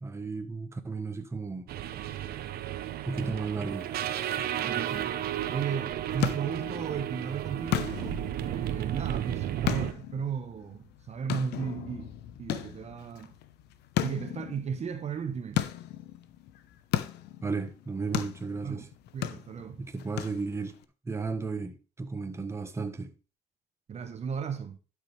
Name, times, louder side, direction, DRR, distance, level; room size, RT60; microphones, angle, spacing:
voice 1, 0.0-1.7 3.1-3.9 17.4-18.9 19.8-20.8 21.0-23.1, right 4 dB, 15° right, 1.2 m, -34 dB
sound 1, 1.7-9.9, right 11 dB, 65° right, 1.0 m, -33 dB
voice 2, 4.4-5.2 5.5-12.1 12.4-13.3 14.0-15.6 18.6-18.9 19.1-19.8 23.9-24.8, right 6 dB, 40° right, 1.1 m, -35 dB
sound 2, 5.7-20.8, left 12 dB, 80° left, 1.0 m, -36 dB
12.0 x 6.5 x 3.3 m
cardioid pair, 110°, 17 cm